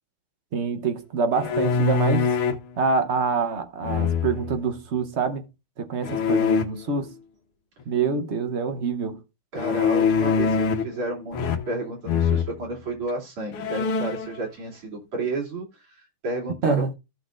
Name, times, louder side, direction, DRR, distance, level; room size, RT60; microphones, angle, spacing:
voice 1, 0.5-2.3 2.8-5.5 5.8-7.1 7.9-9.2 16.6-16.9, right 5 dB, 45° right, 0.9 m, -26 dB
sound 1, 1.3-2.7 3.8-4.6 6.0-6.7 9.6-11.0 11.3-11.8 12.1-12.5 13.1-13.2 13.5-14.3, left 6 dB, 85° left, 1.9 m, -23 dB
voice 2, 9.5-17.0, right 2 dB, 90° right, 3.6 m, -32 dB
15.0 x 6.1 x 2.5 m
omnidirectional pair, 2.3 m